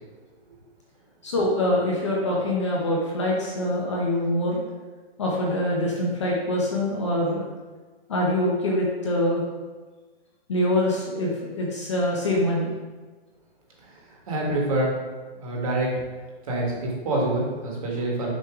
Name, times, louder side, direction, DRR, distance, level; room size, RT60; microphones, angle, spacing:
voice 1, 1.2-4.6 5.2-7.4 8.1-9.4 10.5-12.7, left 1 dB, 30° left, -3 dB, 0.8 m, -24 dB
voice 2, 13.8-15.0 15.4-15.9 16.4-18.3, right 2 dB, 35° right, -3 dB, 1.5 m, -26 dB
6.5 x 3.1 x 4.8 m, 1.3 s
hypercardioid pair, 180°, 31 cm